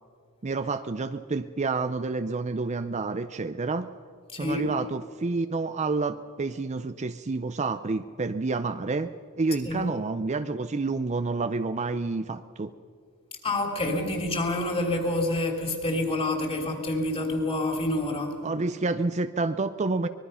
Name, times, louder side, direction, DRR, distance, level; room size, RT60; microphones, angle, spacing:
voice 1, 0.4-3.9 4.3-12.7 18.4-20.1, right 3 dB, 30° right, 11 dB, 0.5 m, -29 dB
voice 2, 4.3-4.7 9.6-9.9 13.4-18.4, left 2 dB, 25° left, 3 dB, 3.1 m, -27 dB
24.5 x 21.0 x 5.7 m, 2.1 s
head